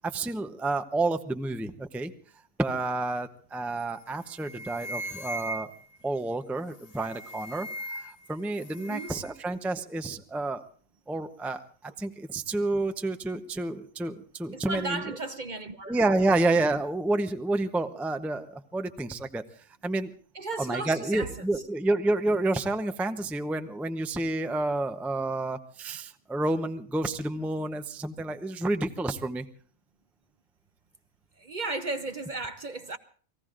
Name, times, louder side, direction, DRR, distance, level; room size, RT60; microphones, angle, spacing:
voice 1, 0.0-2.1 2.6-5.7 6.0-10.6 11.1-15.2 15.9-19.4 19.8-20.1 20.6-29.4, right 2 dB, ahead, 0.6 m, -29 dB
sound 1, 3.8-4.0 4.3-6.0 6.8-8.3 8.5-9.3, equal, 35° left, 0.8 m, -39 dB
voice 2, 14.5-16.0 20.3-21.3 31.4-33.0, right 3 dB, 40° right, 0.8 m, -34 dB
29.5 x 19.5 x 2.5 m
omnidirectional pair, 1.4 m